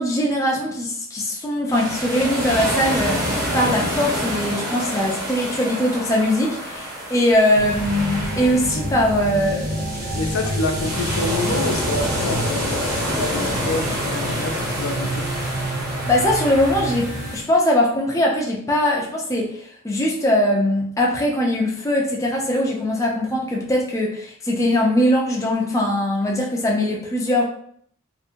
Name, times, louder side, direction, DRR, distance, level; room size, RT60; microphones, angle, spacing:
voice 1, 0.0-10.1 16.1-27.4, left 1 dB, 15° left, -2 dB, 0.4 m, -21 dB
sound 1, 1.7-17.4, equal, 15° right, 0.8 m, -28 dB
sound 2, 7.5-17.4, right 1 dB, 60° right, 0.8 m, -28 dB
voice 2, 10.1-15.5, left 3 dB, 75° left, 4 dB, 0.4 m, -27 dB
2.7 x 2.5 x 2.5 m, 0.64 s
head